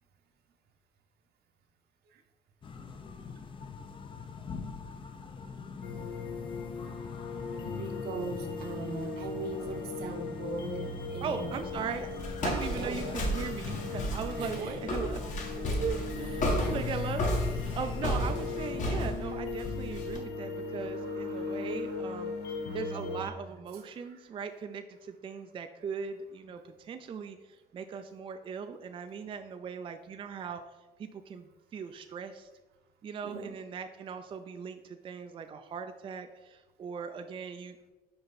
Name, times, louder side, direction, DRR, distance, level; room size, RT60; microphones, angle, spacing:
sound 1, 2.6-19.2, left 5 dB, 30° left, 0.6 m, -44 dB
sound 2, 5.8-23.3, left 4 dB, 75° left, 0.7 m, -38 dB
voice 1, 7.8-11.6 12.7-13.2 14.4-14.8 16.1-17.0 20.3-23.1 23.4-24.6 33.2-33.6, right 3 dB, 70° right, 5 dB, 0.9 m, -41 dB
voice 2, 11.2-12.1 12.4-30.6 31.0-32.5 33.0-37.9, right 6 dB, 30° right, 7 dB, 0.4 m, -39 dB
Walk footsteps, 11.6-20.2, equal, 45° left, 1.3 m, -33 dB
5.5 x 4.3 x 4.1 m, 1.2 s
cardioid pair, 110°, 17 cm